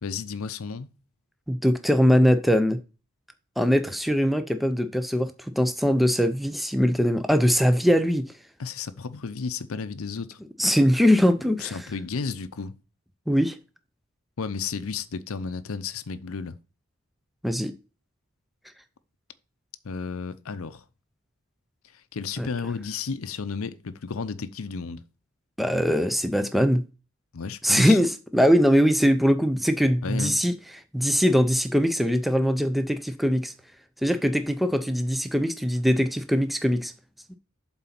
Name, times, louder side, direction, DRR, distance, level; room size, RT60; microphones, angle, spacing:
voice 1, 0.0-0.9 8.6-10.4 11.6-12.7 14.4-16.6 19.8-20.8 22.1-25.0 27.3-28.0 30.0-30.4, left 5 dB, 80° left, 0.6 m, -33 dB
voice 2, 1.5-2.8 3.6-8.3 10.6-11.8 13.3-13.6 17.4-17.7 22.4-22.5 25.6-26.8 27.6-30.5 30.9-33.5 34.0-36.9, equal, ahead, 0.5 m, -21 dB
7.7 x 4.0 x 5.9 m
head